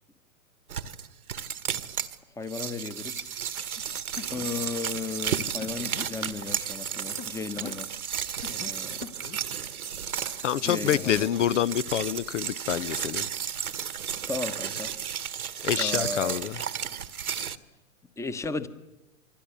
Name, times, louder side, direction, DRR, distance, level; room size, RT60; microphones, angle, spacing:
sound 1, 0.7-2.2 2.5-17.6, right 8 dB, 75° right, 1.7 m, -33 dB
voice 1, 2.4-3.3 4.3-7.9 8.5-8.9 10.6-11.3 14.3-14.9 15.8-16.4 18.2-18.7, left 4 dB, 5° left, 1.1 m, -35 dB
sound 2, 3.8-3.9 4.2-4.5 5.6-6.1 7.2-7.8 8.4-8.7 9.0-9.4 10.9-11.1, left 9 dB, 25° left, 1.0 m, -41 dB
voice 2, 10.4-13.3 15.6-16.6, left 10 dB, 55° left, 0.9 m, -27 dB
27.5 x 24.5 x 8.5 m
figure-of-eight pair, 115°, 43 cm